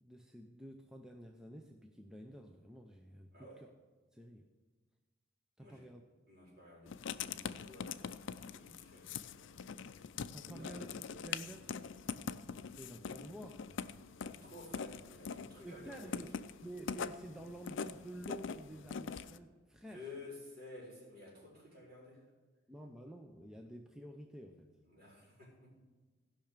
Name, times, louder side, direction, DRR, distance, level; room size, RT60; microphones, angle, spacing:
voice 1, 0.0-3.7 4.1-4.5 5.6-6.0 10.3-11.7 12.8-13.8 15.6-20.1 22.7-24.7, right 1 dB, 5° right, 3 dB, 0.5 m, -50 dB
voice 2, 3.3-3.6 5.6-5.8 6.3-8.0 8.5-9.3 10.5-10.8 12.0-12.2 14.2-16.3 19.8-22.2 24.8-25.5, left 2 dB, 50° right, -5 dB, 4.5 m, -53 dB
Writing, 6.9-19.4, left 6 dB, 65° left, 0.4 m, -44 dB
15.0 x 5.7 x 6.6 m, 1.3 s
head